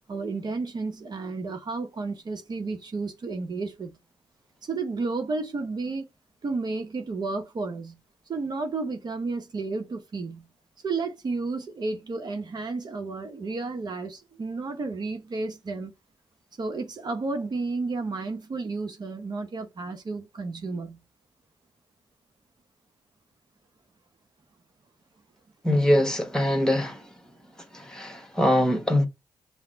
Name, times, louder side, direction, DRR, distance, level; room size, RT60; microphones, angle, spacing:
voice 1, 0.1-4.0 4.6-6.0 6.4-8.0 8.3-10.5 10.8-15.9 16.6-21.0, right 3 dB, 50° right, 0.9 m, -32 dB
voice 2, 25.6-27.0 27.7-29.1, left 1 dB, 5° left, 1.5 m, -23 dB
5.8 x 2.1 x 4.0 m
supercardioid pair, 50°, 9 cm